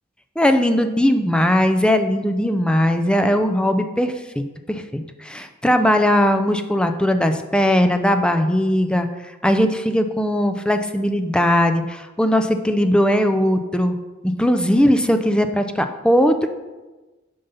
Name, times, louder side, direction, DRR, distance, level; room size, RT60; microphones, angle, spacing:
voice 1, 0.4-9.1 9.4-14.0 14.2-16.5, equal, 5° left, 7 dB, 0.5 m, -19 dB
8.9 x 5.4 x 5.6 m, 1.2 s
head